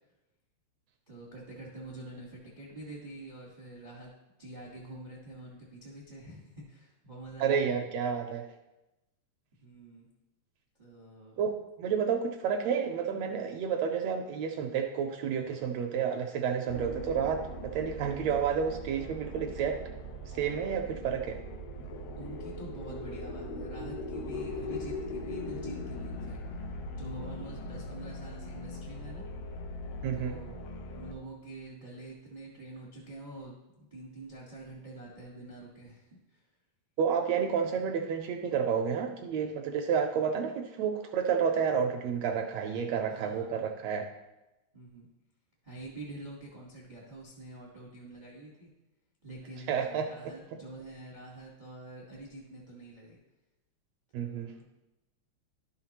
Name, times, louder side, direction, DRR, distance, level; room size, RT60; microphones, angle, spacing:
voice 1, 1.1-4.1 4.4-7.7 9.6-10.1 10.8-11.4 22.2-26.4 26.9-29.2 30.1-30.6 30.9-36.4 43.1-43.7 44.7-45.1 45.6-48.7 49.2-53.2 54.2-54.6, right 2 dB, 35° right, -4 dB, 0.7 m, -46 dB
voice 2, 7.4-8.4 11.4-11.5 11.8-17.4 17.7-19.7 20.3-21.4 30.0-30.4 37.0-44.0 49.7-50.1 54.1-54.5, right 7 dB, 80° right, 4 dB, 1.6 m, -30 dB
sound 1, 16.7-31.1, left 1 dB, 70° left, 1.6 m, -40 dB
11.5 x 5.7 x 3.0 m, 0.98 s
omnidirectional pair, 3.3 m